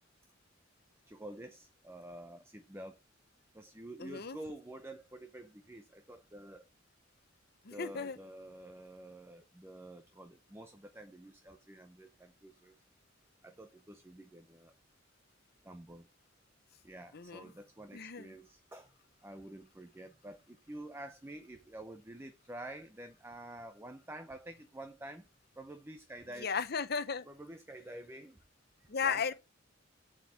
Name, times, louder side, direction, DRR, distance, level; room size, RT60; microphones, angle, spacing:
voice 1, 1.1-3.0 3.5-6.7 7.7-12.7 13.4-14.7 15.6-16.0 16.8-18.9 19.2-25.3 25.6-26.5 27.3-28.4 29.0-29.3, right 1 dB, 10° right, 0.7 m, -49 dB
voice 2, 4.0-4.4 7.6-8.2 17.1-17.5 17.9-18.3 26.4-27.3 28.9-29.3, left 6 dB, 50° left, 0.8 m, -35 dB
7.9 x 4.5 x 7.0 m
head